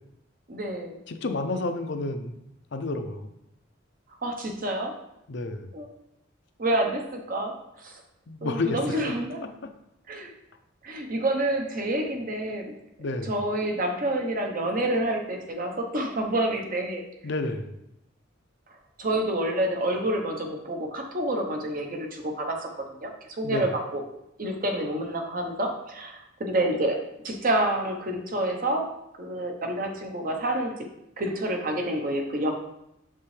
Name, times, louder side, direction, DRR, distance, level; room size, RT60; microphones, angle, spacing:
voice 1, 0.5-1.0 4.2-4.9 5.7-5.9 6.6-8.0 8.4-9.4 10.1-10.3 10.8-12.7 13.3-17.0 19.0-22.7 23.0-23.1 23.4-24.0 24.4-27.0 27.2-28.9 29.2-30.7 31.2-32.5, right 1 dB, 45° right, 3 dB, 0.9 m, -28 dB
voice 2, 1.1-2.4 2.7-3.3 5.3-5.7 8.3-9.0 9.4-9.7 13.0-13.3 17.2-17.7 23.4-23.7, left 2 dB, 60° left, 7 dB, 0.6 m, -30 dB
6.6 x 5.5 x 3.3 m, 0.84 s
head